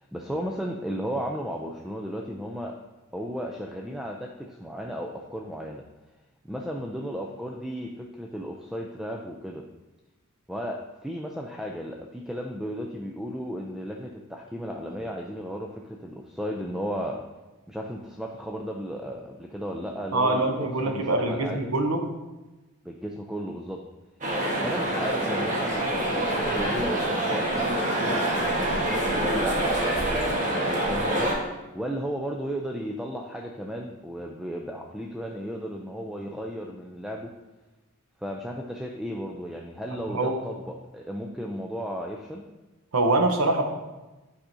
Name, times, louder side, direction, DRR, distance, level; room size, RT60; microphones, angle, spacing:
voice 1, 0.0-2.7 3.1-5.8 6.4-9.6 10.5-17.2 17.7-21.6 22.8-23.8 24.6-37.3 38.2-42.4, equal, ahead, 1 dB, 0.3 m, -34 dB
voice 2, 20.1-22.0 40.1-40.4 42.9-43.6, right 2 dB, 70° right, 4 dB, 0.9 m, -24 dB
sound 1, 24.2-31.3, right 1 dB, 35° right, 1.2 m, -26 dB
8.7 x 4.9 x 2.6 m, 1.1 s
head